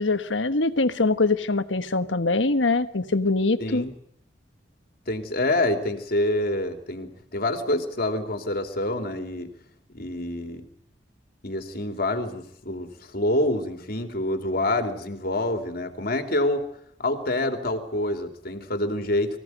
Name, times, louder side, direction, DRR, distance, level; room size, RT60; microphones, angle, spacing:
voice 1, 0.0-3.8, left 3 dB, 85° left, 11 dB, 1.4 m, -23 dB
voice 2, 3.6-3.9 5.1-9.5 9.9-10.6 11.4-16.6 17.0-19.4, left 1 dB, 55° left, 6 dB, 3.0 m, -27 dB
25.0 x 16.5 x 9.3 m, 0.68 s
head